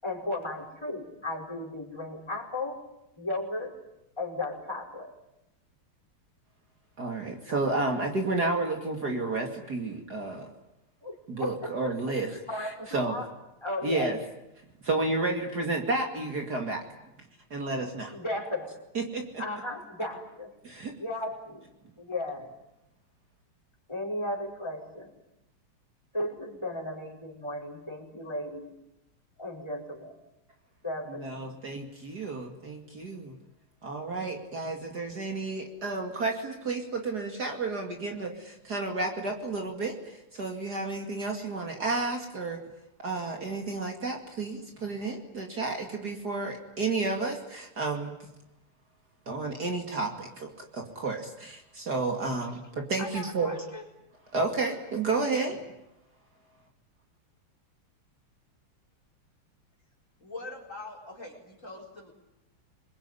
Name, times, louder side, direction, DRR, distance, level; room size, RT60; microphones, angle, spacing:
voice 1, 0.0-2.8 3.2-3.7 4.2-5.1 11.0-11.1 11.4-12.1 12.5-13.3 13.6-14.1 18.1-18.8 19.4-20.5 21.0-21.6 22.0-22.5 23.9-25.1 26.1-28.7 29.4-30.2 30.8-31.6, left 1 dB, 10° left, 2 dB, 5.4 m, -35 dB
voice 2, 7.0-10.5 11.3-13.1 13.8-14.2 14.8-16.8 17.5-18.1 18.9-19.4 20.6-20.9 31.1-33.4 33.8-42.6 43.0-48.1 49.3-50.5 50.7-53.5 54.3-55.6, right 3 dB, 45° right, 3 dB, 2.9 m, -31 dB
voice 3, 53.0-53.8 60.2-62.1, left 3 dB, 35° left, 0 dB, 4.9 m, -42 dB
27.0 x 22.0 x 9.8 m, 0.88 s
omnidirectional pair, 2.4 m